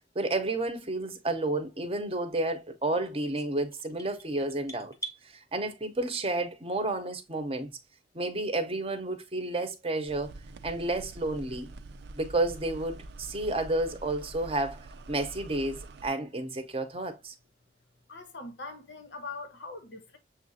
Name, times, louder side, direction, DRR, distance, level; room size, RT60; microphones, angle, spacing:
voice 1, 0.1-4.9 5.2-7.7 8.1-10.3 10.6-11.7 12.1-17.3, right 2 dB, 30° right, 0.7 m, -31 dB
sound 1, 3.3-5.2, right 2 dB, 20° left, 0.6 m, -42 dB
sound 2, 10.1-16.1, right 2 dB, 70° right, 0.4 m, -46 dB
voice 2, 18.1-20.2, left 3 dB, 85° left, 0.9 m, -42 dB
6.8 x 2.4 x 2.7 m
head